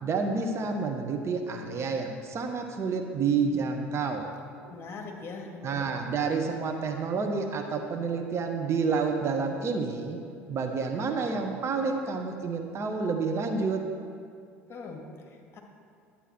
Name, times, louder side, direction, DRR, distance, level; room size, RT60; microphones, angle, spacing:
voice 1, 0.0-4.3 5.6-10.2 10.5-13.8, right 4 dB, 35° right, 4 dB, 1.0 m, -29 dB
voice 2, 4.6-5.9 14.7-15.6, left 3 dB, 35° left, 1 dB, 1.8 m, -42 dB
11.0 x 8.6 x 4.4 m, 2.2 s
figure-of-eight pair, 65°, 8 cm